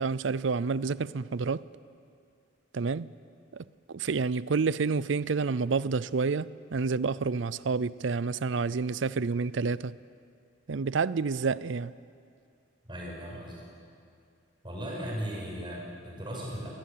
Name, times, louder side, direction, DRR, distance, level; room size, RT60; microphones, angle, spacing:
voice 1, 0.0-1.6 2.7-3.1 3.5-9.9 10.7-11.9, right 4 dB, 70° right, 0.5 m, -29 dB
voice 2, 12.9-13.6 14.6-16.7, equal, 25° right, 6.3 m, -37 dB
22.5 x 18.5 x 8.7 m
head